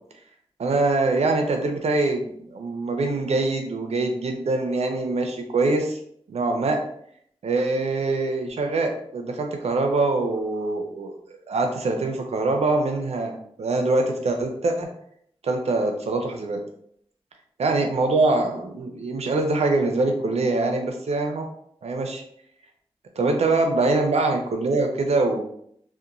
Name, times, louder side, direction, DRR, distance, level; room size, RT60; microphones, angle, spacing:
voice 1, 0.6-6.0 6.3-6.8 7.4-14.9 15.4-16.6 17.6-21.5 21.8-22.2 23.2-25.4, right 3 dB, 90° right, 3 dB, 0.5 m, -24 dB
2.8 x 2.1 x 2.5 m, 0.67 s
wide cardioid pair, 85°, 11 cm